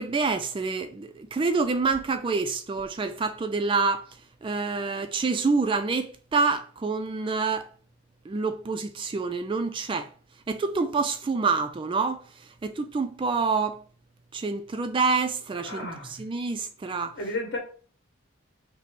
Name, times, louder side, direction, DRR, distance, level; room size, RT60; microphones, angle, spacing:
voice 1, 0.0-4.1 4.4-7.7 8.3-10.1 10.5-12.2 12.6-13.8 14.3-17.1, right 4 dB, 25° right, 0.3 m, -27 dB
voice 2, 15.6-16.1 17.1-17.6, left 2 dB, 55° left, 1.6 m, -32 dB
5.7 x 2.1 x 4.4 m
head